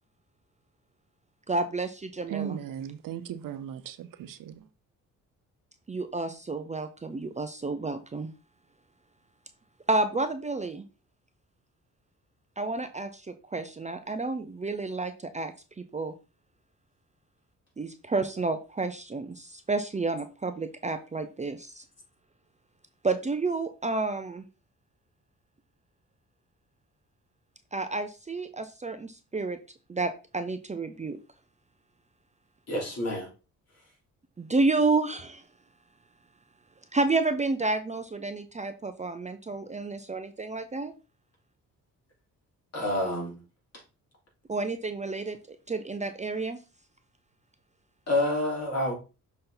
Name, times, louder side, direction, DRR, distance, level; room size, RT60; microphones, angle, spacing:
voice 1, 1.5-2.6 5.9-8.3 9.9-10.9 12.6-16.1 17.8-21.8 23.0-24.5 27.7-29.6 29.9-31.2 34.4-35.4 36.9-40.9 44.5-46.6, right 3 dB, 20° right, 0.6 m, -30 dB
voice 2, 2.3-4.5, right 9 dB, 80° right, 0.7 m, -37 dB
voice 3, 32.7-33.3 42.7-43.4 48.1-48.9, left 1 dB, 50° left, 3.6 m, -28 dB
6.6 x 4.2 x 4.0 m
cardioid pair, 100°, 33 cm